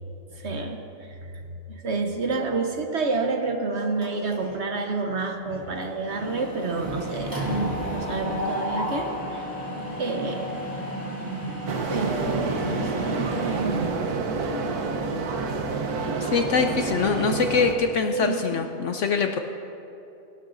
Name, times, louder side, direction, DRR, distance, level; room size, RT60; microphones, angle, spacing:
voice 1, 0.3-0.8 1.3-1.4 1.7-7.4 7.9-9.4 10.0-10.7 11.9-14.0 18.1-18.4, right 3 dB, 50° right, 4 dB, 1.0 m, -29 dB
Mechanisms, 4.0-4.6 4.9-5.2 5.4-13.6, equal, 10° right, 2.4 m, -32 dB
sound 1, 11.7-17.8, right 4 dB, 75° right, 1.4 m, -28 dB
voice 2, 16.2-19.4, left 5 dB, 65° left, 6 dB, 0.8 m, -24 dB
19.5 x 11.5 x 2.5 m, 2.8 s
omnidirectional pair, 1.6 m